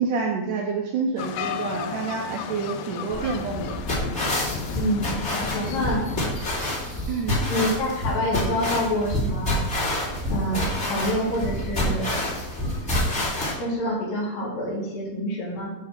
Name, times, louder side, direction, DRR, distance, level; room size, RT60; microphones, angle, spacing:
voice 1, 0.0-3.8 7.1-7.3, right 5 dB, 75° right, 1 dB, 2.0 m, -28 dB
sound 1, 1.2-6.3, left 7 dB, 85° left, 1.8 m, -34 dB
sound 2, 3.1-13.5, left 1 dB, 20° left, 2.1 m, -27 dB
voice 2, 4.7-6.1 7.5-9.6 10.3-12.3 13.6-15.8, equal, 65° left, -5 dB, 4.0 m, -27 dB
9.6 x 3.8 x 5.7 m, 1.0 s
omnidirectional pair, 4.3 m